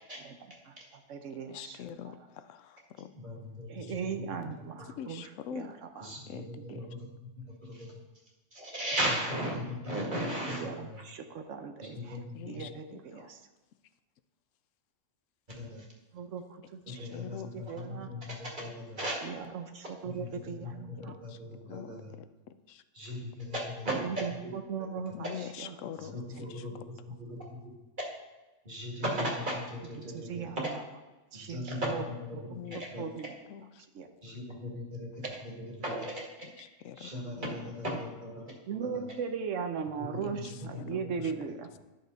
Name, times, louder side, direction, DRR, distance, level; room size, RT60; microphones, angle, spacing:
voice 1, 0.6-2.3 3.7-6.1 6.4-6.8 10.5-13.5 16.1-17.3 17.5-18.1 19.2-21.2 23.9-26.1 26.5-26.8 30.0-30.8 31.3-32.0 32.3-32.4 32.7-33.3 33.9-34.2 38.7-41.8, right 6 dB, 85° right, 6 dB, 1.2 m, -39 dB
voice 2, 1.5-3.1 3.8-3.9 5.0-5.7 6.3-6.9 12.3-13.3 16.9-17.5 21.1-21.4 21.7-22.3 22.7-22.8 25.1-26.6 32.5-33.1 33.5-33.9 36.4-37.5 40.2-41.1, left 9 dB, 90° left, 12 dB, 1.0 m, -45 dB
voice 3, 3.1-4.5 6.0-7.1 7.5-7.9 8.5-11.0 11.8-12.7 15.5-15.9 16.9-19.1 20.0-22.1 22.9-24.0 24.4-24.5 26.1-26.7 27.1-27.6 28.6-30.4 31.3-33.0 34.2-36.1 37.0-39.0 40.0-40.4, equal, 40° right, -2 dB, 2.2 m, -37 dB
11.0 x 6.5 x 4.0 m, 1.1 s
omnidirectional pair, 1.3 m